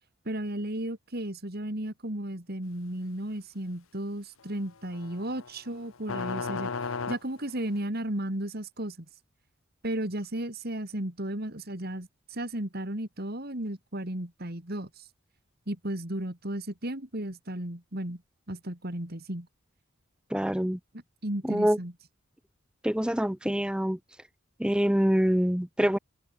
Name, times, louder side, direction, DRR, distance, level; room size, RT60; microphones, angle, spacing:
voice 1, 0.2-6.7 7.1-9.0 9.8-15.0 15.7-18.2 18.5-19.5 21.2-21.9, right 1 dB, 45° right, 3.3 m, -34 dB
sound 1, 4.9-7.8, left 4 dB, 75° left, 0.9 m, -34 dB
voice 2, 20.3-20.8 21.4-21.8 22.8-24.0 24.6-26.0, equal, 5° right, 0.7 m, -25 dB
head